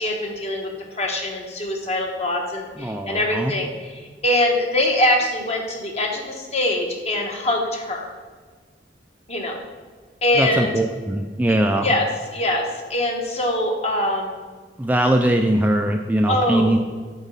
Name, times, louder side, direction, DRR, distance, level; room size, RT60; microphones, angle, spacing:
voice 1, 0.0-8.1 9.3-9.6 10.2-10.7 11.5-11.6 11.8-12.1 12.3-14.3 16.3-16.7, left 1 dB, 35° left, 1 dB, 1.2 m, -23 dB
voice 2, 2.8-3.5 10.4-11.9 14.8-16.8, right 1 dB, 10° right, 4 dB, 0.3 m, -21 dB
8.1 x 4.0 x 5.4 m, 1.5 s
head